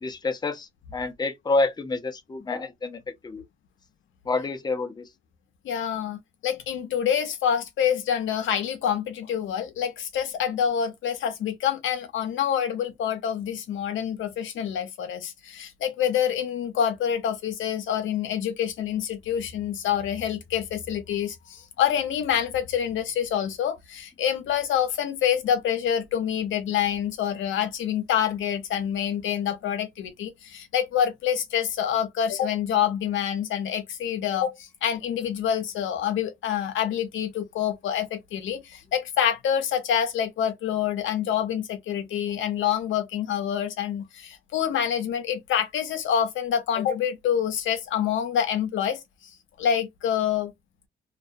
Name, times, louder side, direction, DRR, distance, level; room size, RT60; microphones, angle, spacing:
voice 1, 0.0-3.4 4.3-5.0, left 3 dB, 20° left, 0.5 m, -28 dB
voice 2, 5.6-49.0 49.6-50.5, left 9 dB, 80° left, 0.6 m, -27 dB
2.3 x 2.2 x 2.5 m
cardioid pair, 70°, 20 cm